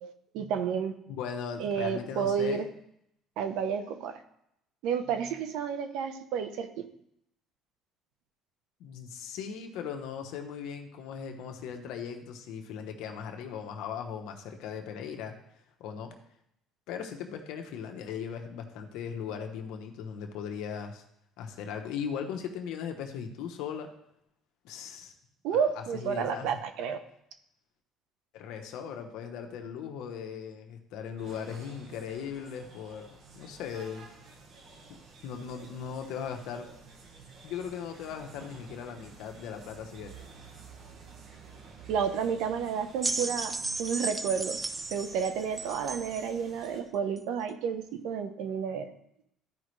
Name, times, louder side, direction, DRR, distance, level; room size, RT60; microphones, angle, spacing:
voice 1, 0.0-0.9 1.6-2.7 3.4-4.2 4.8-6.9 25.4-27.0 41.9-44.6 44.9-48.9, right 7 dB, 80° right, 8 dB, 0.9 m, -31 dB
voice 2, 1.1-2.6 8.8-15.3 15.8-16.1 16.9-21.0 21.4-23.9 24.6-25.1 25.8-26.5 28.3-34.1 34.9-36.7 37.4-40.1, left 7 dB, 80° left, 4 dB, 1.0 m, -38 dB
sound 1, 31.2-46.8, right 4 dB, 55° right, 1.5 m, -51 dB
sound 2, 43.0-46.3 47.2-47.3, right 3 dB, 15° right, 0.4 m, -34 dB
13.5 x 5.1 x 3.2 m, 0.76 s
cardioid pair, 115°, 0 cm